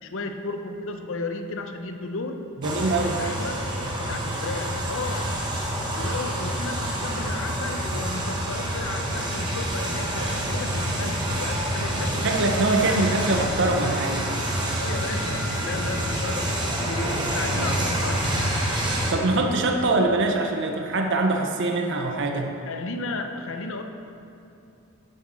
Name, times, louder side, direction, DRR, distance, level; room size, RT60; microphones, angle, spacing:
voice 1, 0.0-2.5 3.2-3.6 4.1-5.4 5.9-12.3 12.8-13.1 14.8-18.3 19.7-20.1 22.7-23.8, left 3 dB, 60° left, 6 dB, 0.6 m, -34 dB
Erickson Sky Crane, 2.6-19.1, right 1 dB, 20° right, 1.2 m, -27 dB
voice 2, 2.6-3.2 12.2-14.2 17.5-17.8 19.1-22.5, right 2 dB, 55° right, 3 dB, 0.7 m, -23 dB
9.9 x 6.4 x 4.3 m, 2.9 s
head